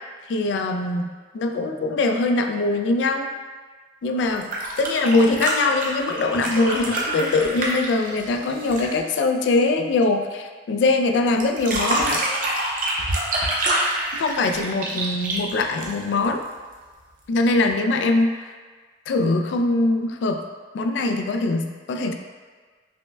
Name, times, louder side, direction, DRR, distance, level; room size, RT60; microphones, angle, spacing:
voice 1, 0.3-3.3 4.0-4.5 4.8-12.2 14.1-16.4 17.3-18.5 19.1-20.4 20.7-22.1, left 2 dB, 70° left, 5 dB, 0.3 m, -22 dB
sound 1, 4.3-9.0 11.4-16.3 17.7-17.8, right 1 dB, 50° right, 0.6 m, -26 dB
5.4 x 2.1 x 2.2 m, 1.5 s
head